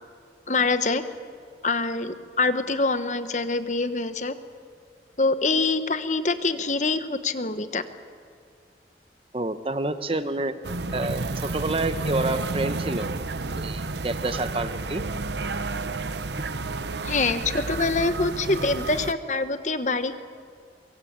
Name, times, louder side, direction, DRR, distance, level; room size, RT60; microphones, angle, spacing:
voice 1, 0.5-1.0 1.6-4.3 5.2-7.8 17.0-20.2, left 3 dB, 40° left, 10 dB, 1.2 m, -25 dB
voice 2, 9.3-10.5 10.9-13.1 13.6-15.0, right 2 dB, 30° right, 11 dB, 1.0 m, -28 dB
sound 1, 10.6-19.1, right 3 dB, 75° right, 0.9 m, -31 dB
23.0 x 22.5 x 8.8 m, 2.1 s
head